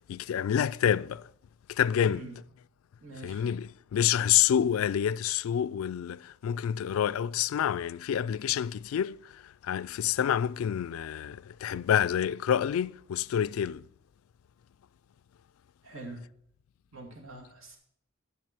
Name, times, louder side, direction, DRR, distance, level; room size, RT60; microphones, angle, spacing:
voice 1, 0.1-1.3 1.7-2.3 3.2-13.8, left 9 dB, 80° left, 0.3 m, -28 dB
voice 2, 2.0-2.4 3.0-3.4 15.8-16.2 16.9-17.8, right 2 dB, 75° right, 2.4 m, -44 dB
11.0 x 5.4 x 4.4 m
head